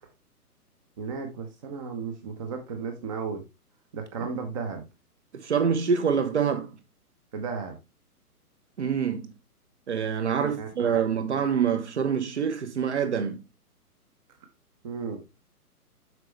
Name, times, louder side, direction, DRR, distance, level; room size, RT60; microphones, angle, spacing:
voice 1, 1.0-3.4 3.9-4.8 7.3-7.8 10.6-11.0 14.8-15.2, right 5 dB, 20° right, 0.9 m, -34 dB
voice 2, 5.3-6.7 8.8-9.3 9.9-13.4, right 7 dB, 45° right, 1.1 m, -26 dB
7.6 x 5.6 x 3.1 m
figure-of-eight pair, 130°, 46 cm